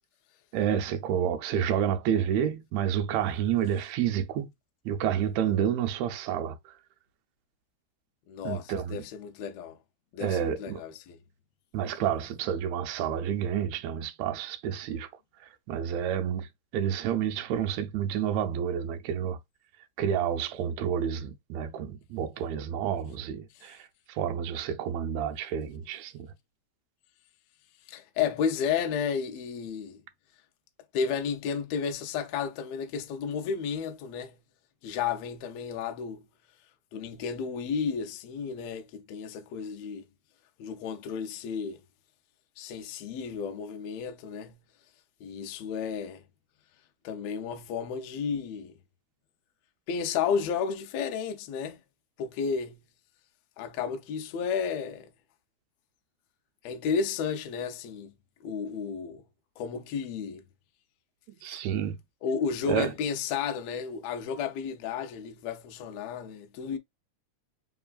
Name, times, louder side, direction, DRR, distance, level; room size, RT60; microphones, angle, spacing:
voice 1, 0.5-4.5 4.9-6.6 8.4-9.0 10.2-10.8 11.7-15.1 15.7-16.5 16.7-19.4 20.0-26.3 61.4-62.0 62.7-62.9, right 9 dB, 75° right, 1.8 m, -29 dB
voice 2, 8.3-9.8 10.1-11.2 23.5-23.7 27.9-30.0 30.9-34.4 34.8-36.2 36.9-40.0 40.6-41.8 42.6-44.6 45.2-46.2 47.0-48.7 49.9-51.8 52.2-52.8 53.6-55.1 56.6-58.1 58.4-59.2 59.6-60.4 61.5-61.6 62.2-66.8, left 6 dB, 75° left, 1.7 m, -32 dB
4.5 x 3.4 x 2.3 m
omnidirectional pair, 3.4 m